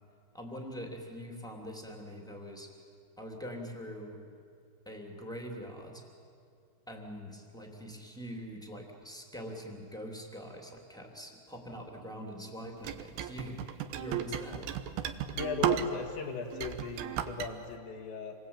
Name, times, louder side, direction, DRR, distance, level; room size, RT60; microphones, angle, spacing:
voice 1, 0.3-2.7 3.2-4.2 4.8-6.0 6.9-14.7, equal, ahead, 1 dB, 1.8 m, -43 dB
sound 1, 12.8-16.2 16.5-17.5, right 10 dB, 75° right, 2.4 m, -34 dB
voice 2, 15.3-18.4, left 5 dB, 75° left, -1 dB, 3.9 m, -38 dB
27.5 x 22.5 x 8.9 m, 2.4 s
omnidirectional pair, 5.3 m